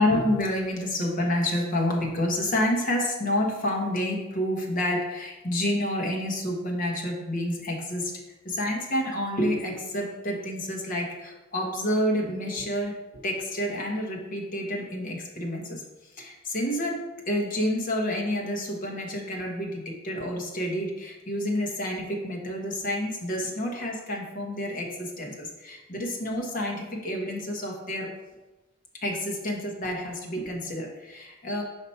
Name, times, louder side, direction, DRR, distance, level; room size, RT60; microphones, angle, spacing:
voice 1, 0.0-8.2 8.4-15.8 16.2-28.1 29.0-31.6, left 1 dB, 40° left, 0 dB, 1.2 m, -29 dB
5.6 x 5.0 x 4.3 m, 1.1 s
head